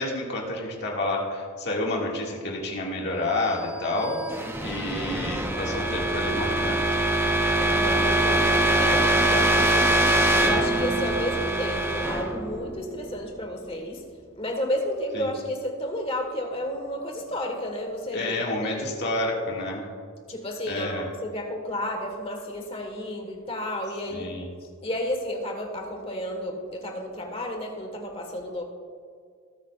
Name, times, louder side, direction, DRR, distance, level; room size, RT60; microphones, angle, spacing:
voice 1, 0.0-4.2 4.6-6.8 15.1-15.3 18.1-19.9 20.7-21.1 24.1-24.5, left 2 dB, 50° left, -2 dB, 2.0 m, -29 dB
sound 1, 3.6-13.4, right 1 dB, 10° right, 0.6 m, -24 dB
voice 2, 7.5-9.9 10.4-14.0 14.4-19.0 20.3-24.3 24.8-28.6, left 1 dB, 25° left, 3 dB, 1.5 m, -32 dB
19.0 x 8.5 x 2.4 m, 2.1 s
head